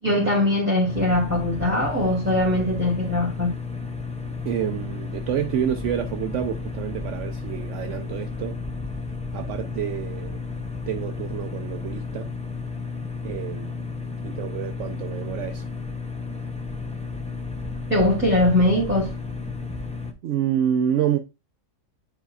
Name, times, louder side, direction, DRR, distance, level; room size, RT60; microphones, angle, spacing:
voice 1, 0.0-3.5 17.9-19.1, left 1 dB, 10° right, 2.6 m, -21 dB
sound 1, 0.9-20.1, left 4 dB, 10° left, 0.3 m, -33 dB
voice 2, 4.4-8.6 9.3-10.4 10.9-12.3 13.2-13.8 14.2-15.6 20.2-21.2, right 9 dB, 70° right, 0.9 m, -28 dB
10.0 x 4.5 x 2.4 m
omnidirectional pair, 1.3 m